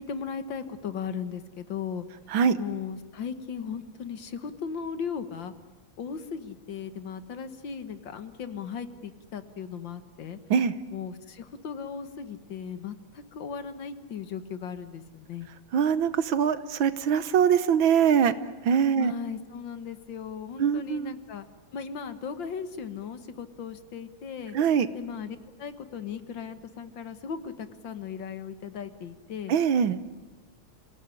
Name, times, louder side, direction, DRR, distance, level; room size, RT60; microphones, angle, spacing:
voice 1, 0.0-2.1 2.6-5.5 6.0-10.4 10.9-15.5 19.0-21.5 21.7-24.6 24.9-29.5, left 6 dB, 70° left, 11 dB, 2.0 m, -37 dB
voice 2, 15.7-18.3 18.7-19.1 20.6-21.1 24.5-24.9 29.5-30.0, right 7 dB, 75° right, 14 dB, 1.8 m, -23 dB
28.5 x 17.5 x 9.9 m, 1.2 s
omnidirectional pair, 2.2 m